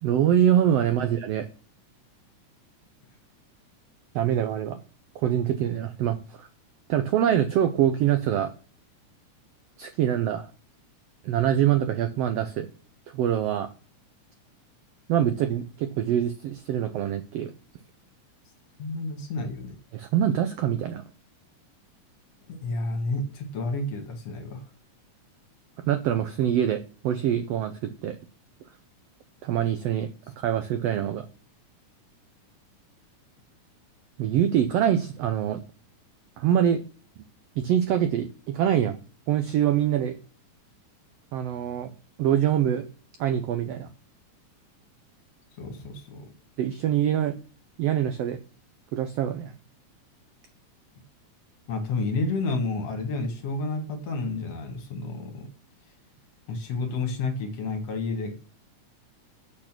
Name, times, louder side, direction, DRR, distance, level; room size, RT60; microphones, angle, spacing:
voice 1, 0.0-1.5 4.1-4.8 5.1-6.5 6.9-8.5 9.8-10.5 11.2-12.7 13.1-13.7 15.1-17.5 19.9-21.0 25.9-28.2 29.4-30.1 30.4-31.3 34.2-35.6 36.4-36.8 37.6-39.0 39.3-40.2 41.3-41.9 42.2-42.8 43.2-43.9 46.6-47.3 47.8-48.4 48.9-49.5, right 10 dB, 85° right, 8 dB, 1.4 m, -24 dB
voice 2, 18.8-19.8 22.5-24.6 45.6-46.3 51.7-55.5 56.5-58.4, left 3 dB, 60° left, 5 dB, 2.5 m, -30 dB
8.5 x 6.5 x 6.0 m, 0.40 s
omnidirectional pair, 3.6 m